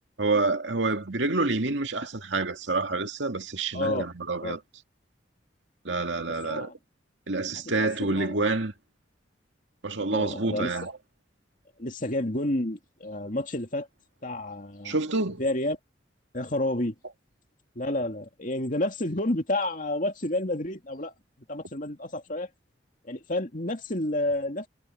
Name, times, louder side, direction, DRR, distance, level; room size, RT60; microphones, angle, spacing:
voice 1, 0.2-4.6 5.8-6.7 7.3-8.7 9.8-10.9 14.8-15.4, right 3 dB, 75° right, 2.1 m, -27 dB
voice 2, 3.7-4.1 4.4-4.6 6.4-6.7 7.5-7.7 8.0-8.3 10.1-10.8 11.8-13.9 14.2-15.0 15.4-15.8 16.3-16.9 17.7-21.1 21.5-22.5 23.0-24.7, left 1 dB, 45° left, 2.6 m, -30 dB
head